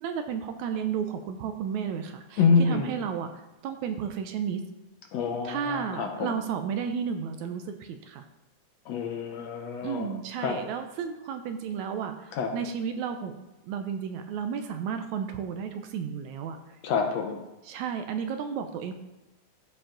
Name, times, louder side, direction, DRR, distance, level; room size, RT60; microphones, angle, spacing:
voice 1, 0.0-4.6 5.4-8.2 9.8-13.4 13.6-16.6 17.7-18.9, right 7 dB, 80° right, 7 dB, 1.9 m, -33 dB
voice 2, 2.4-2.9 5.1-6.4 8.9-10.1 10.4-10.6 12.3-12.5 16.8-17.4, left 5 dB, 70° left, 3 dB, 1.8 m, -26 dB
14.0 x 4.9 x 3.8 m, 1.0 s
omnidirectional pair, 3.6 m